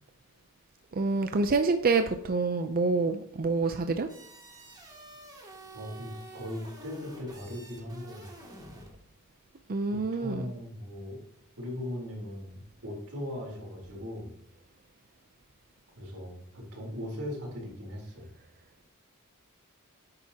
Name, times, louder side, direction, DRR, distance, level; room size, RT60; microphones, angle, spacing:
voice 1, 0.9-4.1 9.7-10.4, right 3 dB, 40° right, 7 dB, 0.5 m, -27 dB
sound 1, 4.1-8.9, right 1 dB, 20° right, 2.4 m, -48 dB
voice 2, 5.7-8.3 9.9-11.2 11.6-14.4 16.0-18.3, left 1 dB, 80° right, -1 dB, 3.8 m, -39 dB
10.5 x 8.7 x 2.9 m, 0.78 s
head